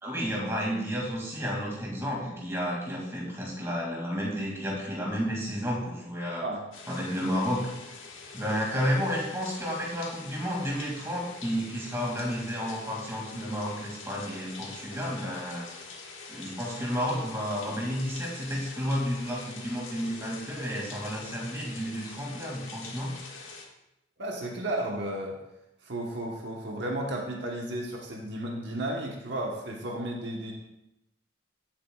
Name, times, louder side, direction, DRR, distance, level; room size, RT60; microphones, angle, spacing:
voice 1, 0.0-6.4 6.9-7.7 8.3-15.7 16.3-23.1, equal, 15° right, -3 dB, 2.2 m, -31 dB
sound 1, 6.7-23.6, left 4 dB, 85° left, 1.7 m, -45 dB
voice 2, 24.2-25.4 25.8-30.5, right 1 dB, 55° right, -1 dB, 1.1 m, -33 dB
16.0 x 7.4 x 2.3 m, 0.86 s
head